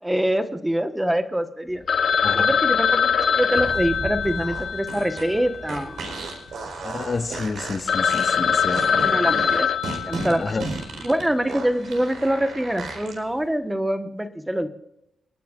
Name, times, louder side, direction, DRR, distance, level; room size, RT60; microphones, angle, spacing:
voice 1, 0.0-1.8 2.3-6.0 8.9-9.7 10.0-10.6 11.0-14.7, right 1 dB, 5° right, 8 dB, 1.2 m, -25 dB
Telephone, 1.9-6.2 6.5-6.6 7.1-7.2 7.6-7.7 7.9-10.8, left 6 dB, 50° left, 0.8 m, -23 dB
sound 1, 3.5-13.2, right 3 dB, 80° right, 4.4 m, -34 dB
voice 2, 6.8-9.0 10.4-10.7, left 4 dB, 35° left, 7 dB, 1.4 m, -29 dB
30.0 x 10.5 x 2.5 m, 0.81 s
wide cardioid pair, 140°, 0 cm